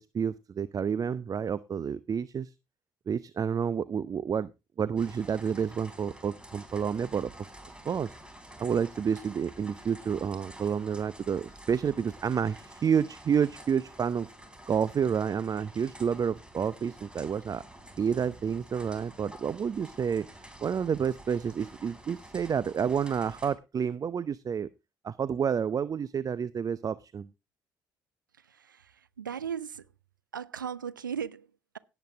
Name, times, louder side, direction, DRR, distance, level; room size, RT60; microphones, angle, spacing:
voice 1, 0.0-2.5 3.1-4.5 4.8-7.3 7.8-8.1 8.6-14.3 14.7-17.6 18.0-20.3 20.6-24.7 25.0-27.3, right 7 dB, 35° right, 0.6 m, -29 dB
sound 1, 5.0-23.5, right 1 dB, 10° right, 3.7 m, -50 dB
voice 2, 28.4-29.9 30.3-31.8, right 7 dB, 85° right, 0.5 m, -37 dB
17.0 x 8.1 x 3.5 m
figure-of-eight pair, 50°, 10 cm